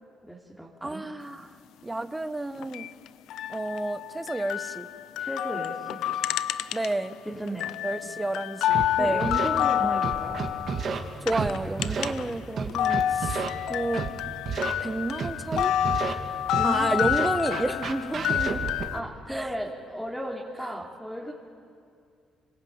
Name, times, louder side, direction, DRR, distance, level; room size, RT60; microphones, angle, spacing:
voice 1, 0.2-1.1 5.2-6.0 7.3-7.8 9.0-10.4 11.8-12.0 16.5-17.0 18.9-21.3, equal, ahead, -2 dB, 3.6 m, -35 dB
voice 2, 0.8-1.6 1.8-2.9 3.5-4.9 6.7-7.2 7.8-9.3 11.2-13.4 13.7-14.1 14.8-15.7 16.6-18.7 19.3-19.5, right 2 dB, 15° right, 10 dB, 1.4 m, -30 dB
sound 1, 2.6-7.2 7.5-12.3 12.6-19.0, left 11 dB, 80° left, 0.6 m, -29 dB
Scratching (performance technique), 8.7-8.8 9.2-9.5 10.0-11.0 11.3-11.5 11.8-12.1 12.6-13.5 13.9-14.1 14.5-14.7 15.2-16.1 16.5-16.7 17.0-18.8, right 6 dB, 55° right, 2.7 m, -30 dB
26.5 x 23.5 x 9.0 m, 2.3 s
cardioid pair, 80°, 0 cm